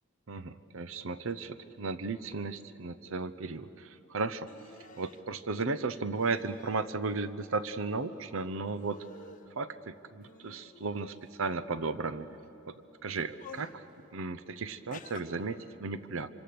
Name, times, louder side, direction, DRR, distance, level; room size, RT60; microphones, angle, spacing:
voice 1, 0.3-4.5 5.0-9.0 9.6-12.3 12.7-12.8 13.0-13.8 14.1-16.3, right 3 dB, 65° right, 13 dB, 0.7 m, -35 dB
sound 1, 4.4-5.2 6.2-6.9 7.2-8.3 8.7-9.5 10.2-11.3 12.0-12.4 13.1-13.8 14.9-15.2, left 4 dB, 40° left, 1.4 m, -52 dB
26.0 x 26.0 x 6.8 m, 2.9 s
head